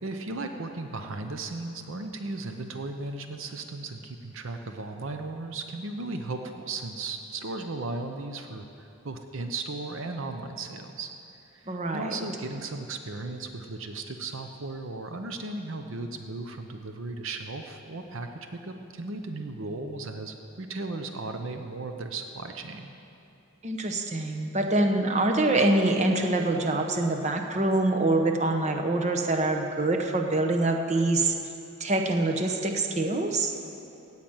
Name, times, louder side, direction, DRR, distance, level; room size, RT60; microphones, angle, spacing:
voice 1, 0.0-11.1 11.5-22.9, right 3 dB, 60° right, 6 dB, 0.7 m, -36 dB
voice 2, 11.7-12.2 23.6-31.3 31.8-33.5, right 2 dB, 30° right, 4 dB, 0.8 m, -25 dB
16.5 x 5.9 x 8.8 m, 2.8 s
head